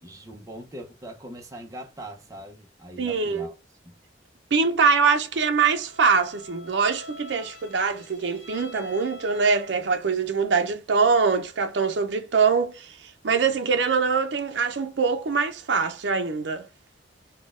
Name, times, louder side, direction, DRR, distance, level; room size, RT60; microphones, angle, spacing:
voice 1, 0.0-3.5 3.8-3.9, right 1 dB, 20° right, 0.6 m, -41 dB
voice 2, 3.0-3.5 4.5-13.0 13.2-16.7, right 5 dB, 75° right, 0.5 m, -23 dB
Bowed string instrument, 5.4-10.1, left 1 dB, 70° left, 1.0 m, -45 dB
4.1 x 2.2 x 3.6 m
head